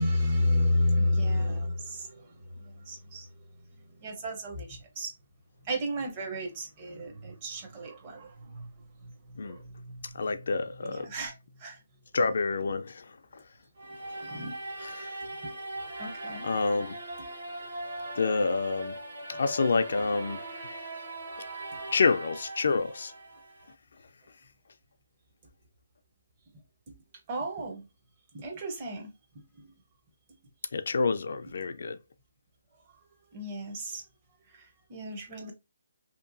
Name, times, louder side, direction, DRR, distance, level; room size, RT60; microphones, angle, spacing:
voice 1, 0.0-3.3 4.0-5.1 5.6-8.7 9.0-9.1 9.4-10.2 10.8-11.3 11.6-11.8 14.2-14.6 15.4-15.5 16.0-16.5 17.2-17.3 26.9-27.0 27.3-27.8 28.3-29.1 29.6-29.7 33.3-34.0 34.5-35.5, left 1 dB, 25° right, 0.7 m, -32 dB
voice 2, 10.1-11.1 12.1-13.4 14.1-14.4 14.8-15.2 16.3-17.0 18.1-19.0 19.3-20.4 21.4-21.5 21.9-23.1 30.7-32.0, left 4 dB, 65° left, 0.3 m, -28 dB
sound 1, 13.8-23.7, right 1 dB, 55° right, 1.2 m, -40 dB
2.8 x 2.2 x 2.5 m
hypercardioid pair, 160°, 0 cm